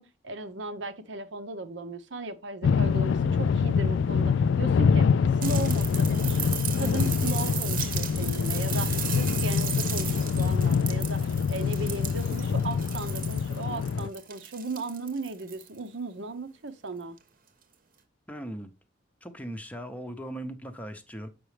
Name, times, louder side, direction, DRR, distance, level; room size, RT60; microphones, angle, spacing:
voice 1, 0.0-5.1 5.4-6.4 6.8-17.2, right 3 dB, 70° right, 0.8 m, -36 dB
sound 1, 2.6-14.1, left 6 dB, 70° left, 0.3 m, -25 dB
sound 2, 5.4-15.8 17.2-17.3, right 9 dB, 45° right, 0.9 m, -36 dB
voice 2, 18.3-18.7 19.2-21.3, right 1 dB, 10° left, 0.7 m, -38 dB
7.7 x 6.0 x 3.2 m
head